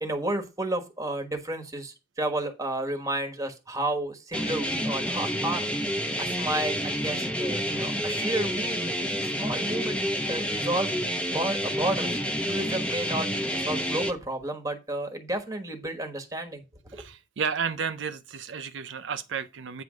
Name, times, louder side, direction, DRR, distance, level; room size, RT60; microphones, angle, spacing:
voice 1, 0.0-5.7 6.2-10.9 11.3-12.1 12.5-16.6 16.9-17.0, right 1 dB, 15° right, 1.3 m, -32 dB
sound 1, 4.3-14.1, equal, 5° left, 0.8 m, -29 dB
voice 2, 16.9-19.8, right 6 dB, 70° right, 0.5 m, -32 dB
9.2 x 3.4 x 6.2 m
head